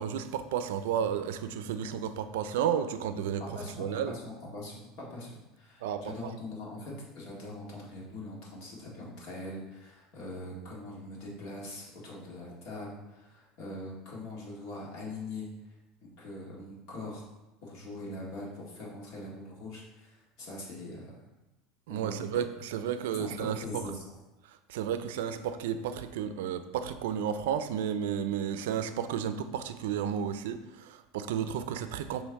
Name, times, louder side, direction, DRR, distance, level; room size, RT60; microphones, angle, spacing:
voice 1, 0.0-3.4 3.8-4.1 5.8-6.3 21.9-23.8 24.5-32.2, right 8 dB, 90° right, 10 dB, 0.4 m, -32 dB
voice 2, 3.4-15.5 16.0-17.2 17.6-21.2 21.9-22.3 23.2-24.0, left 2 dB, 50° left, -4 dB, 1.9 m, -42 dB
6.3 x 3.2 x 4.7 m, 1.0 s
supercardioid pair, 170°, 0 cm